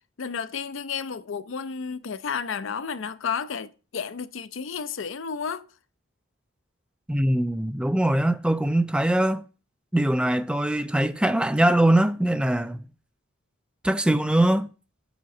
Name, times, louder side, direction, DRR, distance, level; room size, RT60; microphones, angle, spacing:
voice 1, 0.2-5.7, left 6 dB, 70° left, 0.5 m, -32 dB
voice 2, 7.1-9.4 9.9-12.8 13.8-14.7, right 1 dB, 5° right, 0.3 m, -22 dB
6.7 x 5.1 x 5.9 m
head